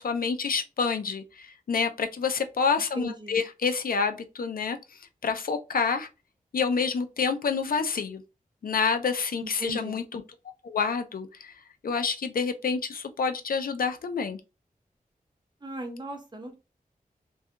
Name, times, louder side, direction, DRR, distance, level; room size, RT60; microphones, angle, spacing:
voice 1, 0.0-4.8 5.2-6.1 6.5-8.2 8.6-10.2 10.6-11.5 11.8-14.4, left 5 dB, 75° left, 0.4 m, -28 dB
voice 2, 2.9-3.4 9.4-10.0 15.6-16.5, right 1 dB, 30° right, 0.8 m, -38 dB
2.7 x 2.3 x 2.3 m
wide cardioid pair, 55°, 15 cm